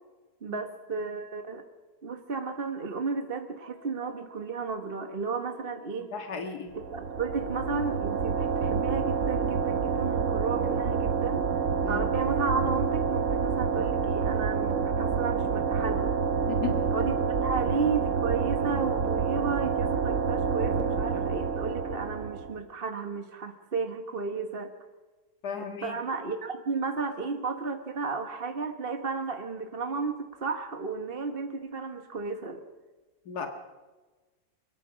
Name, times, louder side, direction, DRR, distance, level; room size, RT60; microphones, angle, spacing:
voice 1, 0.4-1.6 2.0-6.1 6.9-11.4 11.9-16.2 16.9-24.7 25.6-32.6, right 4 dB, 40° right, 6 dB, 1.4 m, -33 dB
sound 1, 3.5-17.4, right 2 dB, 30° left, 7.9 m, -55 dB
voice 2, 6.1-6.8 11.8-12.0 16.5-16.8 25.4-26.0 33.3-33.5, left 6 dB, 80° left, 5 dB, 2.4 m, -35 dB
sound 2, 6.7-22.6, right 6 dB, 55° right, 1.2 m, -28 dB
23.5 x 22.0 x 6.3 m, 1.2 s
omnidirectional pair, 1.7 m